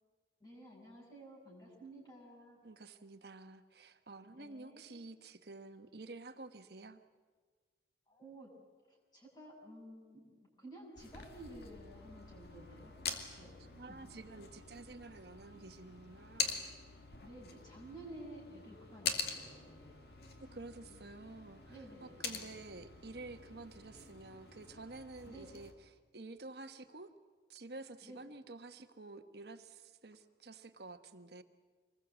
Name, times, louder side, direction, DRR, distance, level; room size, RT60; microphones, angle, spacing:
voice 1, 0.4-2.6 4.3-4.8 8.1-8.5 9.1-12.9 13.4-13.5 13.9-14.1 17.2-20.0 20.9-21.0 21.7-22.5 25.2-25.5 28.0-28.2, right 1 dB, 25° left, -3 dB, 6.4 m, -53 dB
voice 2, 2.6-7.0 13.7-16.7 20.4-27.1 27.5-31.4, right 3 dB, 65° right, 9 dB, 1.2 m, -50 dB
sound 1, 11.0-25.7, left 5 dB, 60° left, 2.3 m, -45 dB
25.0 x 20.5 x 8.2 m, 1.5 s
head